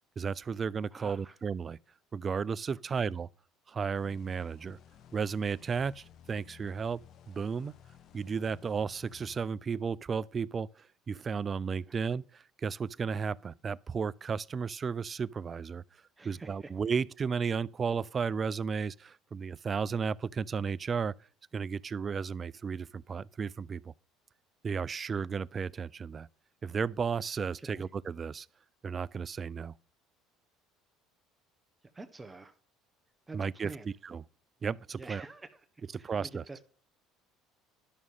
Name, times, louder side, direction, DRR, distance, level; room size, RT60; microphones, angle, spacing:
voice 1, 0.2-1.8 2.1-3.3 3.7-4.8 5.1-7.7 8.1-21.1 21.5-23.9 24.6-26.3 26.6-28.5 28.8-29.7 33.3-34.2 34.6-35.2 35.9-36.4, right 6 dB, 35° right, 0.4 m, -34 dB
voice 2, 0.9-1.4 2.9-3.1 11.8-12.0 16.2-16.7 27.6-27.9 31.9-32.5 33.3-33.9 34.9-35.6 36.0-36.6, right 3 dB, 15° right, 1.1 m, -47 dB
sound 1, 4.0-9.5, left 9 dB, 55° left, 1.0 m, -56 dB
11.5 x 6.2 x 5.5 m
supercardioid pair, 85°, 0 cm